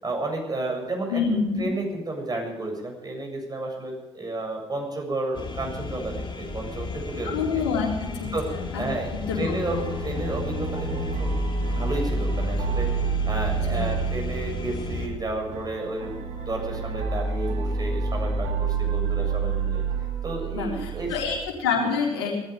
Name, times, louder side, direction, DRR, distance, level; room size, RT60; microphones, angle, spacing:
voice 1, 0.0-7.4 8.3-8.5 8.8-11.3 11.7-19.8 20.2-21.1 21.8-21.9, right 2 dB, 30° right, 2 dB, 7.5 m, -32 dB
voice 2, 1.1-1.6 7.3-8.3 8.7-8.8 9.3-9.9 13.7-13.9 20.5-22.3, left 5 dB, 75° left, 0 dB, 3.8 m, -27 dB
sound 1, 5.3-15.1, left 4 dB, 35° left, 4.1 m, -33 dB
sound 2, 9.7-21.4, right 5 dB, 60° right, 2.3 m, -28 dB
18.0 x 14.5 x 5.1 m, 1.1 s
figure-of-eight pair, 40°, 14 cm